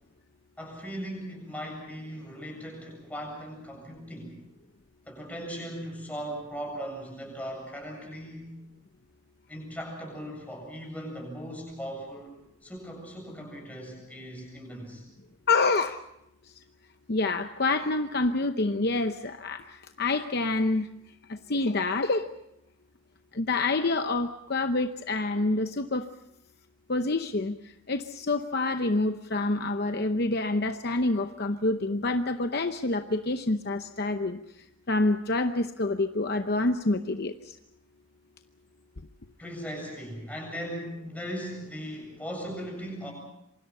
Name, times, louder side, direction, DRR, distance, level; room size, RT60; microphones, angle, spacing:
voice 1, 0.6-4.4 5.1-8.6 9.5-12.3 12.6-15.0 39.4-43.1, equal, 5° left, 1 dB, 7.7 m, -38 dB
voice 2, 15.5-16.0 17.1-20.9 21.3-22.3 23.3-26.1 26.9-27.6 27.9-34.4 34.9-37.5, left 2 dB, 45° left, 7 dB, 0.8 m, -27 dB
27.5 x 24.5 x 5.5 m, 0.81 s
head